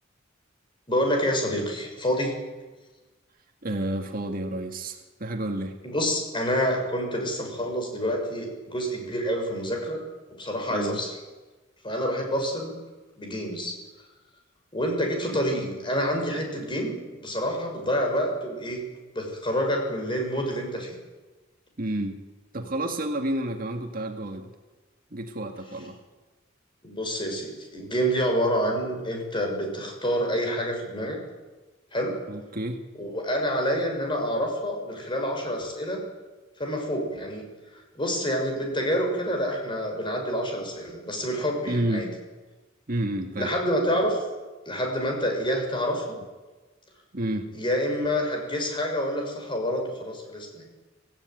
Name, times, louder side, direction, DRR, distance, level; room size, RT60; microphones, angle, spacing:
voice 1, 0.9-2.4 5.8-10.0 10.4-11.1 11.8-12.7 13.2-13.7 14.7-18.8 19.1-20.9 26.8-31.2 31.9-32.1 32.9-36.0 36.6-37.4 37.9-42.1 43.4-44.2 44.7-46.2 47.5-50.6, equal, 25° left, 2 dB, 6.0 m, -27 dB
voice 2, 3.6-5.8 10.7-11.0 21.8-22.2 22.5-24.5 25.1-26.0 32.3-32.8 41.7-42.1 42.9-43.5 47.1-47.5, right 1 dB, 45° right, 4 dB, 1.8 m, -30 dB
25.0 x 16.5 x 9.3 m, 1.2 s
head